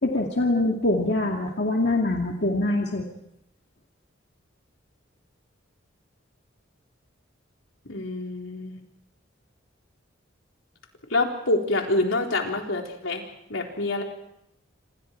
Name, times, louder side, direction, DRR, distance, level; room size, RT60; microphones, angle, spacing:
voice 1, 0.0-3.0, left 2 dB, 55° left, 1 dB, 2.3 m, -24 dB
voice 2, 7.9-8.8 11.1-13.2 13.5-14.0, left 2 dB, 80° left, 1 dB, 4.0 m, -26 dB
27.0 x 27.0 x 4.6 m, 0.78 s
head